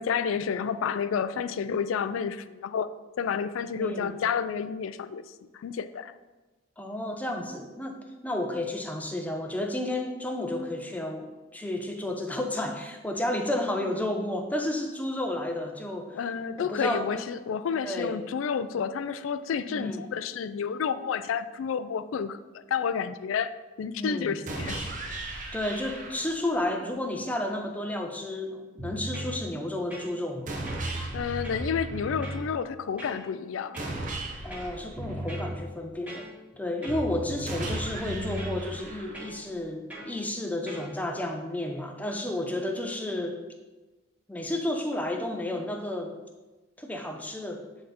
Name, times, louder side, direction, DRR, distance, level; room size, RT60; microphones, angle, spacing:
voice 1, 0.0-2.9 3.2-5.2 5.5-6.1 16.1-23.5 23.8-24.8 31.1-33.8 42.4-42.5, left 6 dB, 85° left, 13 dB, 0.3 m, -30 dB
voice 2, 3.8-4.1 6.8-8.0 8.2-16.2 16.6-17.2 17.8-18.2 19.7-20.0 23.9-24.4 25.5-30.5 34.4-36.3 36.6-43.4 44.3-46.1 46.8-47.6, left 1 dB, 10° left, 3 dB, 0.6 m, -32 dB
sound 1, 24.5-26.5 30.5-32.5 33.8-35.8 37.5-39.5, right 2 dB, 40° right, 0.9 m, -38 dB
sound 2, 28.8-29.4 29.9-30.4 30.7-32.5 33.0-33.2 33.7-34.0 34.5-35.6 36.1-36.5 36.8-38.6 39.1-39.4 39.9-40.1 40.7-40.9, right 1 dB, 5° right, 1.5 m, -36 dB
8.6 x 3.9 x 4.2 m, 1.2 s
head